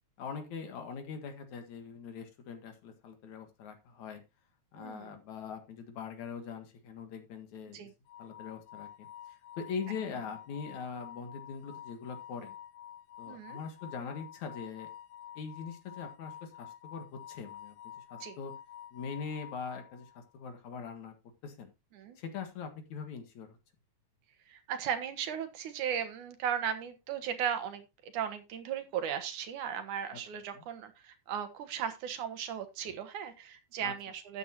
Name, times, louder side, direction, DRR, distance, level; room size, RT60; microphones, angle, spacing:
voice 1, 0.2-4.2 4.7-7.8 8.2-12.5 13.2-14.9 15.4-18.5 18.9-21.1 21.4-21.7 22.2-23.6 30.5-30.6 33.8-33.9, left 6 dB, 70° left, 6 dB, 3.1 m, -42 dB
voice 2, 4.8-5.1 7.7-7.9 13.3-13.6 18.2-18.4 22.0-22.2 24.5-34.4, right 8 dB, 80° right, 9 dB, 2.8 m, -36 dB
sound 1, 8.1-20.3, left 11 dB, 90° left, 2.2 m, -49 dB
12.5 x 9.0 x 3.0 m, 0.24 s
omnidirectional pair, 3.5 m